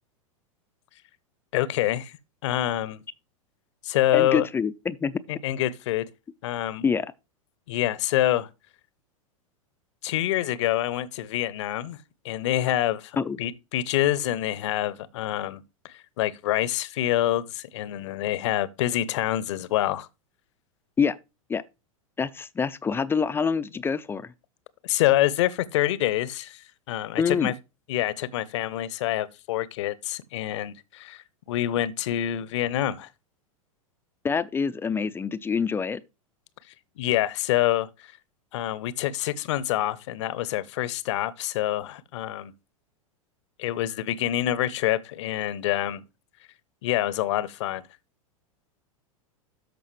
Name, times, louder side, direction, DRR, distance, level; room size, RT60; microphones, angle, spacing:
voice 1, 1.5-2.2 2.4-3.0 3.8-4.5 5.3-6.0 6.4-6.8 7.7-8.5 10.0-12.0 12.2-20.1 24.8-27.5 27.9-31.2 31.5-33.1 37.0-37.9 38.5-42.5 43.6-46.0 46.8-47.8, left 13 dB, 55° left, 0.8 m, -26 dB
voice 2, 4.1-5.2 6.8-7.1 13.2-13.4 21.0-21.2 21.5-21.6 22.2-24.3 27.2-27.5 34.2-36.0, left 6 dB, 15° left, 0.4 m, -26 dB
13.0 x 5.1 x 3.2 m
figure-of-eight pair, 95°, 18 cm